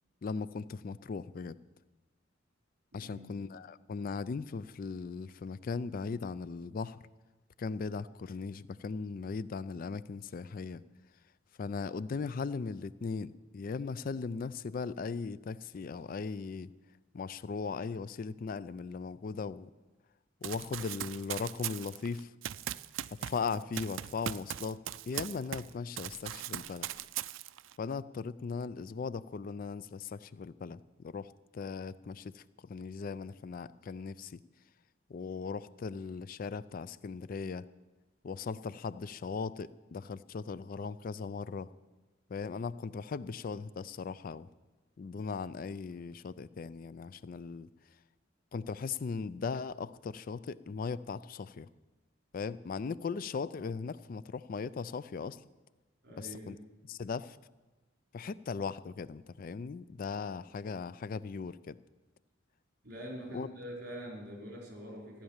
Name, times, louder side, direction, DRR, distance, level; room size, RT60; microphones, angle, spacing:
voice 1, 0.2-1.5 2.9-7.0 7.6-10.8 11.6-16.7 17.1-19.7 20.4-22.3 23.1-24.8 25.1-26.9 27.8-34.4 35.1-37.7 38.2-41.7 42.3-44.5 45.0-47.7 48.5-51.7 52.3-55.4 56.2-56.6 56.9-57.4 58.1-61.7 63.3-63.5, left 5 dB, 45° left, 17 dB, 0.4 m, -38 dB
voice 2, 2.9-3.3 56.0-56.6 62.8-65.2, equal, 55° right, -1 dB, 4.4 m, -44 dB
Run, 20.4-25.7 26.0-27.7, right 11 dB, 85° right, 0.4 m, -39 dB
14.5 x 10.0 x 7.2 m, 1.2 s
head